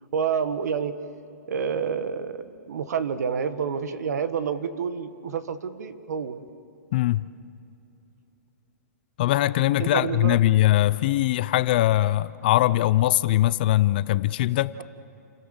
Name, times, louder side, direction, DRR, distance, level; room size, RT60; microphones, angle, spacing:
voice 1, 0.1-1.0 1.5-6.4 9.8-10.4, right 6 dB, 70° right, 1.5 m, -28 dB
voice 2, 6.9-7.2 9.2-14.7, left 15 dB, 35° left, 0.4 m, -21 dB
29.0 x 16.0 x 7.3 m
hypercardioid pair, 170°, 9 cm